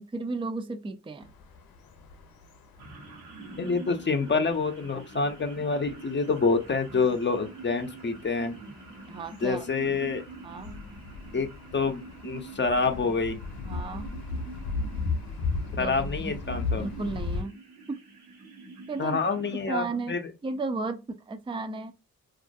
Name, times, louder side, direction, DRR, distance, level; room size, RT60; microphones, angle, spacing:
voice 1, 0.0-1.3 9.1-9.7 10.4-10.9 13.6-14.2 15.8-16.4 16.8-17.6 17.9-18.0 18.9-19.2 19.5-21.9, right 3 dB, 15° right, 0.4 m, -34 dB
sound 1, 1.2-17.4, left 4 dB, 75° left, 0.7 m, -37 dB
sound 2, 2.8-19.6, right 3 dB, 90° right, 1.0 m, -45 dB
voice 2, 3.6-8.5 9.4-10.3 11.3-13.4 15.8-16.8 19.0-20.2, left 4 dB, 30° left, 0.6 m, -27 dB
2.4 x 2.1 x 2.6 m
supercardioid pair, 50°, 36 cm